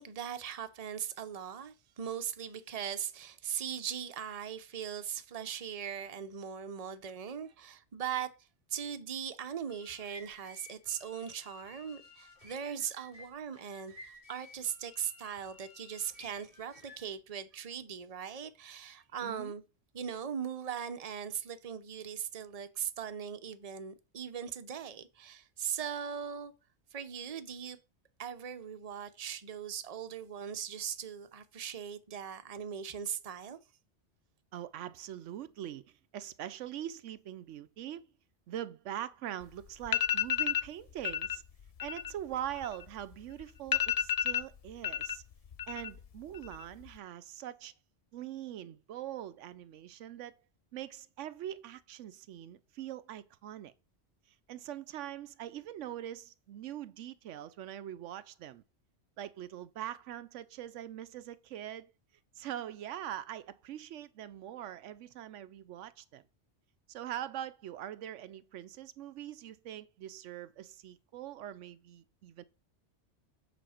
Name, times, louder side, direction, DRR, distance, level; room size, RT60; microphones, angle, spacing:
voice 1, 0.0-19.6 19.9-26.5 26.9-27.8 28.2-33.6, right 8 dB, 35° right, 0.8 m, -39 dB
sound 1, 9.5-17.1, left 2 dB, 30° left, 4.1 m, -55 dB
voice 2, 19.2-19.5 34.5-38.0 38.5-41.4 41.8-45.2 45.7-47.7 48.1-50.3 50.7-53.7 54.5-58.6 59.2-61.9 62.4-66.2 66.9-72.4, right 11 dB, 85° right, 1.0 m, -43 dB
sound 2, 39.4-39.5 39.8-40.7 41.0-41.4 41.7-43.1 43.4-43.5 43.7-45.2 45.5-46.1 46.3-46.9, left 10 dB, 50° left, 0.4 m, -31 dB
8.1 x 4.2 x 6.4 m
omnidirectional pair, 1.2 m